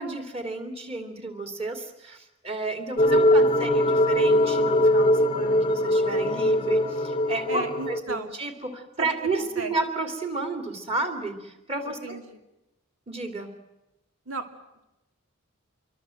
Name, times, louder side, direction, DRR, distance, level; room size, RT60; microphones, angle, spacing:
voice 1, 0.0-12.0 13.1-13.5, right 3 dB, 30° right, 6 dB, 3.0 m, -31 dB
sound 1, 3.0-8.0, left 1 dB, 25° left, 0.8 m, -21 dB
voice 2, 3.3-3.7 7.5-8.3 9.0-9.7 12.0-12.4 14.3-14.5, right 3 dB, 85° right, 6 dB, 2.8 m, -36 dB
26.5 x 23.5 x 7.9 m, 0.94 s
head